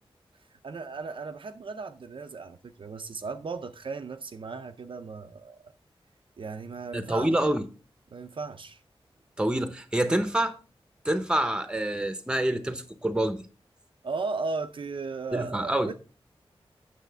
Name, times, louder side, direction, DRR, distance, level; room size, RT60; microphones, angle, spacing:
voice 1, 0.6-5.7 6.4-7.3 8.1-8.8 14.0-15.9, right 4 dB, 60° right, 0.5 m, -36 dB
voice 2, 6.9-7.6 9.4-10.5 11.0-13.5 15.3-15.9, right 1 dB, 10° right, 0.9 m, -27 dB
9.1 x 7.0 x 3.4 m
wide cardioid pair, 115°, 10 cm